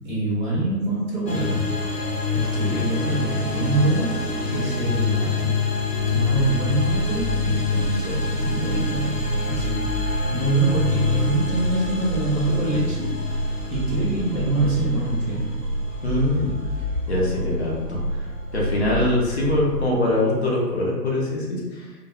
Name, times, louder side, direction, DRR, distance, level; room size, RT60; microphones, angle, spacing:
voice 1, 0.0-1.6 2.1-4.2 4.5-5.6 6.1-10.0 10.3-15.5, right 2 dB, 30° right, -14 dB, 0.8 m, -25 dB
sound 1, 1.3-20.4, left 5 dB, 75° left, 0.7 m, -28 dB
sound 2, 6.0-19.9, right 1 dB, 80° right, 0.7 m, -29 dB
voice 2, 16.0-16.6 17.1-18.2 18.5-21.9, left 1 dB, 45° left, -4 dB, 0.6 m, -23 dB
2.2 x 2.1 x 2.7 m, 1.2 s
figure-of-eight pair, 140°, 50 cm